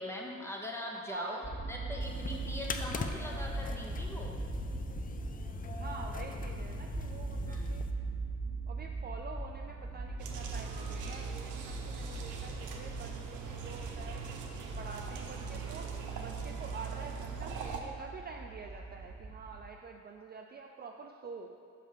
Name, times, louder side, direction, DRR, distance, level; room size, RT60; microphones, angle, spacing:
voice 1, 0.0-1.4 1.7-4.4 7.4-7.9, left 1 dB, 10° left, -1 dB, 1.0 m, -41 dB
voice 2, 0.9-1.6 5.7-7.9 8.7-14.4 14.8-21.6, right 5 dB, 35° right, 2 dB, 0.4 m, -47 dB
sound 1, 1.4-19.6, right 3 dB, 10° right, 1.2 m, -40 dB
sound 2, 2.0-7.9, left 5 dB, 30° left, 0.4 m, -42 dB
sound 3, 10.2-17.8, right 5 dB, 80° right, 0.8 m, -42 dB
5.6 x 5.4 x 5.0 m, 2.5 s
cardioid pair, 90°, 30 cm